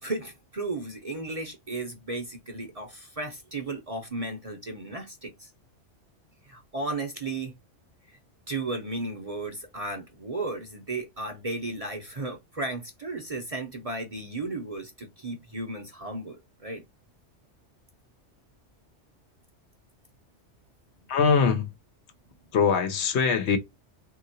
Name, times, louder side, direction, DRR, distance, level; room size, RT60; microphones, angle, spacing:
voice 1, 0.0-5.5 6.4-7.5 8.1-8.2 8.5-16.8, right 2 dB, 35° right, 0.6 m, -34 dB
voice 2, 21.1-21.7 22.5-23.6, left 6 dB, 70° left, 0.9 m, -22 dB
3.6 x 2.8 x 2.6 m
omnidirectional pair, 1.2 m